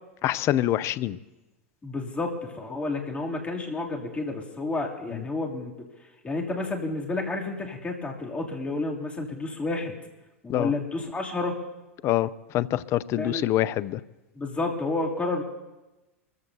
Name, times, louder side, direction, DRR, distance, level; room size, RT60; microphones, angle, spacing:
voice 1, 0.2-1.2 5.1-5.2 10.5-10.7 12.0-14.0, left 13 dB, 40° left, 18 dB, 0.5 m, -25 dB
voice 2, 1.8-5.7 6.0-9.9 10.4-11.5 13.2-13.4 14.3-15.4, left 2 dB, 15° left, -1 dB, 2.8 m, -30 dB
25.0 x 15.0 x 2.8 m, 1.1 s
hypercardioid pair, 90°, 7 cm